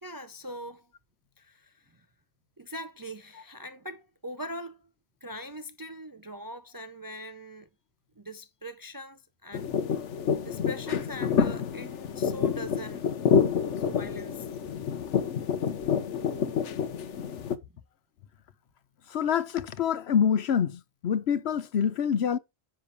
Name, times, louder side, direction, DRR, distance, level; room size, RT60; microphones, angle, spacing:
voice 1, 0.0-0.9 1.4-2.1 2.6-4.9 5.2-7.7 8.2-9.7 10.4-13.1 13.8-14.5, equal, 25° right, 0.4 m, -41 dB
sound 1, 9.5-17.6, left 7 dB, 85° left, 1.2 m, -28 dB
voice 2, 19.1-22.4, left 8 dB, 65° left, 1.0 m, -26 dB
10.0 x 3.3 x 6.7 m
omnidirectional pair, 1.2 m